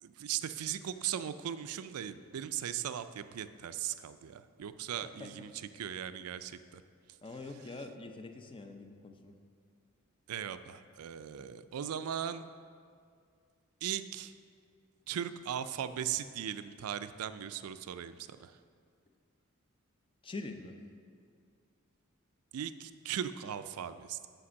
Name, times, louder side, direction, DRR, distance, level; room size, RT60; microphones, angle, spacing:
voice 1, 0.0-6.8 10.3-12.5 13.8-14.3 15.1-18.6 22.5-24.3, right 9 dB, 80° right, 12 dB, 0.4 m, -38 dB
voice 2, 7.2-9.4 20.2-20.8, left 3 dB, 25° left, 6 dB, 0.5 m, -44 dB
8.5 x 5.2 x 6.3 m, 2.2 s
head